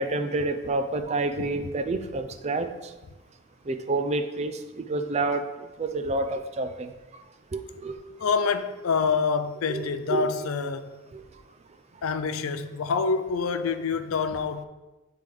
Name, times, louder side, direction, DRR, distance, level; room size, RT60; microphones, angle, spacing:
voice 1, 0.0-2.9 3.7-5.5 5.8-6.9 7.5-8.0 9.7-10.3 11.1-11.2, right 2 dB, 30° right, 0.4 m, -28 dB
voice 2, 8.2-11.0 12.0-14.6, left 5 dB, 80° left, 0.4 m, -26 dB
9.0 x 3.4 x 3.4 m
head